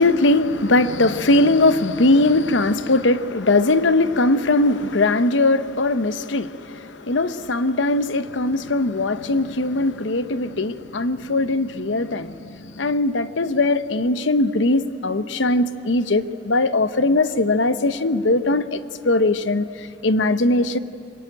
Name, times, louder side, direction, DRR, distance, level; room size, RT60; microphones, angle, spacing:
voice 1, 0.0-18.8 19.0-20.8, left 2 dB, 75° left, 0.9 m, -20 dB
25.0 x 22.5 x 9.0 m
head